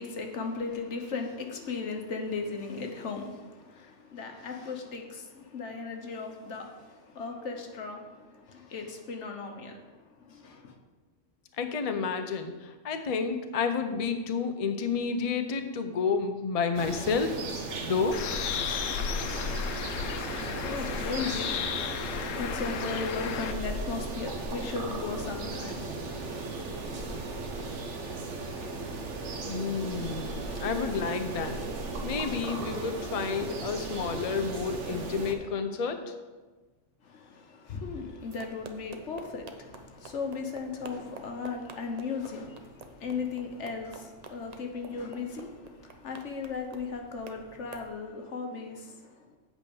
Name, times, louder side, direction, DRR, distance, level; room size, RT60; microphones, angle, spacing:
voice 1, 0.0-10.8 20.3-27.9 37.0-49.4, left 4 dB, 65° left, 1.3 m, -37 dB
voice 2, 11.6-17.4 17.8-18.2 29.5-31.6 32.0-36.1, left 5 dB, 40° left, 0.6 m, -30 dB
sound 1, 16.7-35.3, right 3 dB, 65° right, 1.3 m, -36 dB
Bird, 18.1-23.5, left 7 dB, 90° left, 1.0 m, -34 dB
sound 2, 38.2-47.9, right 3 dB, 40° right, 0.6 m, -49 dB
8.2 x 5.1 x 7.0 m
omnidirectional pair, 1.3 m